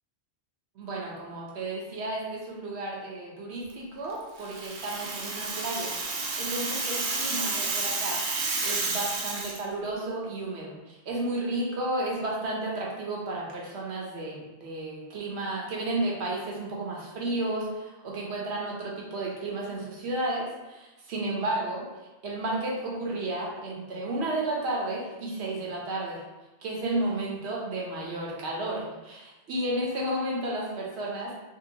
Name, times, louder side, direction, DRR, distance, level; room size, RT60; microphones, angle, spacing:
voice 1, 0.8-5.9 6.4-8.2 8.6-21.9 22.2-26.2 26.6-31.3, right 2 dB, 75° right, -3 dB, 1.0 m, -32 dB
Rattle (instrument), 4.4-9.6, right 3 dB, 55° right, 0.7 m, -31 dB
3.7 x 2.1 x 2.7 m, 1.1 s
omnidirectional pair, 1.1 m